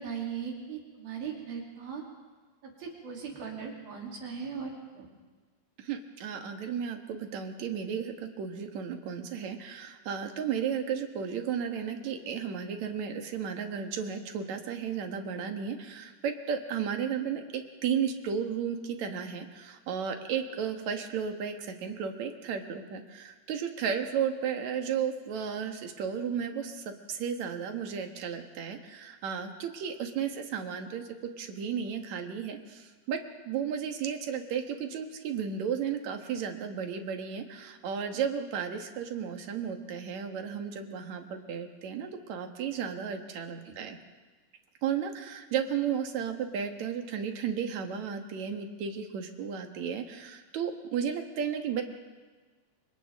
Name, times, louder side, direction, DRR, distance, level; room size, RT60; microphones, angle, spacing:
voice 1, 0.0-2.0 2.6-5.1 43.6-43.8, right 6 dB, 90° right, -1 dB, 4.9 m, -39 dB
voice 2, 5.8-31.1 31.4-33.2 33.5-44.0 44.8-51.8, right 7 dB, 60° right, 5 dB, 2.5 m, -34 dB
29.5 x 25.5 x 3.6 m, 1.4 s
omnidirectional pair, 4.1 m